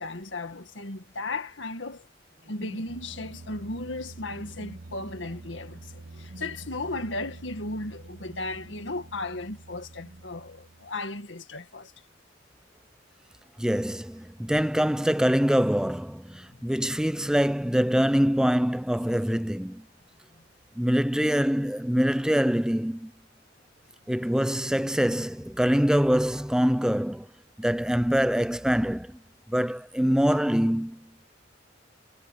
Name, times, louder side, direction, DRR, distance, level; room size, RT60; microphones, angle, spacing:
voice 1, 0.0-2.1 2.5-11.9 16.5-16.6, left 2 dB, 75° left, 2.0 m, -35 dB
sound 1, 2.4-11.2, right 2 dB, 55° right, 1.2 m, -46 dB
voice 2, 13.6-19.8 20.8-23.1 24.1-27.3 27.6-29.2 29.5-31.0, equal, 5° right, 0.6 m, -24 dB
head